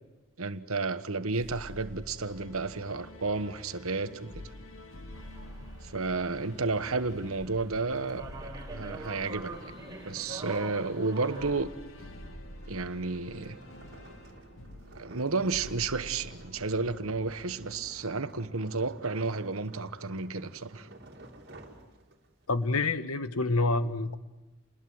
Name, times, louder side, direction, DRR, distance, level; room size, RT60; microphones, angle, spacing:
voice 1, 0.4-4.5 5.9-8.2 8.7-9.8 10.0-11.7 12.7-13.6 15.0-20.9, right 3 dB, 75° right, 1.3 m, -32 dB
sound 1, 1.3-18.1, left 1 dB, 70° left, 2.3 m, -48 dB
sound 2, 5.1-11.5, right 2 dB, 15° right, 4.1 m, -45 dB
sound 3, 11.5-22.5, right 1 dB, 50° right, 3.1 m, -52 dB
voice 2, 22.5-24.2, left 2 dB, 85° left, 1.3 m, -27 dB
29.5 x 21.0 x 7.9 m
head